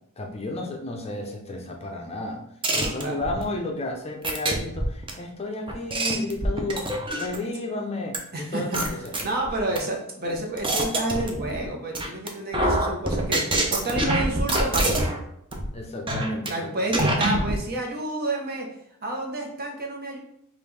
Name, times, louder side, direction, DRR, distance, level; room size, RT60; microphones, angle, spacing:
voice 1, 0.2-2.4 2.7-9.1 15.7-17.0, left 2 dB, 30° left, 1 dB, 0.5 m, -32 dB
sound 1, 2.6-3.4 4.2-5.1 5.7-7.5 8.1-8.2 8.7-9.8 10.3-11.7 11.9-12.3 12.5-15.2 15.5-15.7 16.1-16.5 16.9-17.6, right 1 dB, 25° right, 0.6 m, -25 dB
voice 2, 2.7-3.2 8.3-8.8 9.2-13.4 13.7-15.1 16.5-18.7 19.0-20.2, right 1 dB, 45° right, 1 dB, 0.9 m, -29 dB
5.2 x 2.5 x 3.3 m, 0.73 s
head